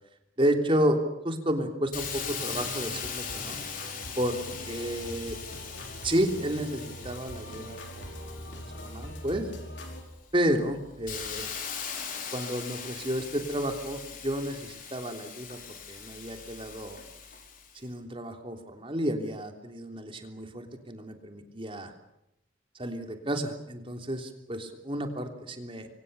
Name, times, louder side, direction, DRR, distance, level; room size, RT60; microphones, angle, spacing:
voice 1, 0.4-1.0 1.2-3.6 4.2-4.4 4.7-5.4 6.0-9.5 10.3-11.5 12.3-15.6 15.9-17.0 17.7-21.9 22.8-25.9, equal, 25° right, 5 dB, 3.3 m, -31 dB
Hiss, 1.9-9.5 10.0-17.7, left 6 dB, 45° left, 4.7 m, -40 dB
sound 1, 2.0-10.0, equal, 65° left, 5.1 m, -42 dB
28.0 x 24.5 x 7.0 m, 0.84 s
head